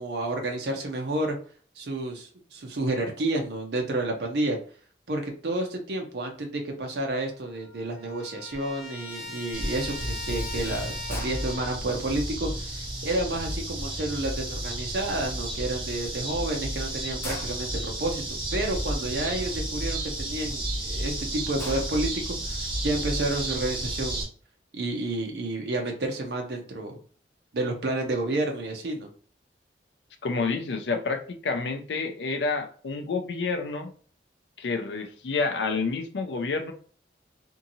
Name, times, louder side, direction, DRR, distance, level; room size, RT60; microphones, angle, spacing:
voice 1, 0.0-1.4 1.8-4.6 5.1-24.3 24.7-27.0 27.5-29.1, right 2 dB, 65° right, 2 dB, 0.5 m, -30 dB
Trumpet, 7.0-7.1 7.4-11.8, left 3 dB, 55° left, 1.0 m, -40 dB
sound 1, 8.5-8.8 9.1-14.7 15.1-15.9 16.3-16.4 16.6-16.7 17.0-20.6 21.0-21.1 21.4-22.1, left 1 dB, 15° left, 0.5 m, -43 dB
sound 2, 9.5-24.2, right 1 dB, 30° right, 0.9 m, -32 dB
voice 2, 30.2-33.9 34.6-36.7, left 4 dB, 75° left, 6 dB, 0.5 m, -29 dB
2.7 x 2.6 x 2.7 m, 0.44 s
head